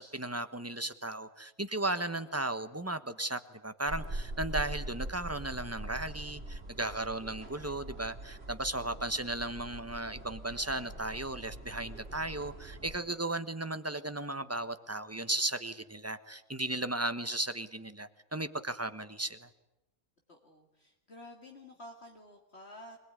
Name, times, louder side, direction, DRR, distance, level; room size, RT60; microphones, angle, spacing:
voice 1, 0.0-19.5, right 2 dB, 10° right, 11 dB, 1.1 m, -35 dB
sound 1, 3.9-13.0, right 1 dB, 45° right, 3.5 m, -43 dB
voice 2, 20.3-23.0, left 1 dB, 50° left, 1 dB, 2.6 m, -51 dB
25.5 x 21.0 x 9.8 m, 0.97 s
omnidirectional pair, 1.5 m